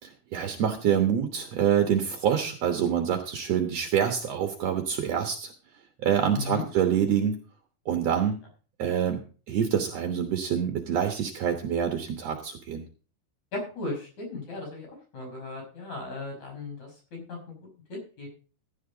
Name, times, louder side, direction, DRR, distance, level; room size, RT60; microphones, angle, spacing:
voice 1, 0.0-5.5 6.0-7.4 7.8-8.4 8.8-9.2 9.5-12.8, right 8 dB, 60° right, 5 dB, 1.8 m, -26 dB
voice 2, 6.3-6.6 8.2-8.3 13.5-14.9 15.1-17.4 17.9-18.3, left 3 dB, 45° left, 2 dB, 6.8 m, -36 dB
15.5 x 9.7 x 4.0 m, 0.38 s
omnidirectional pair, 4.4 m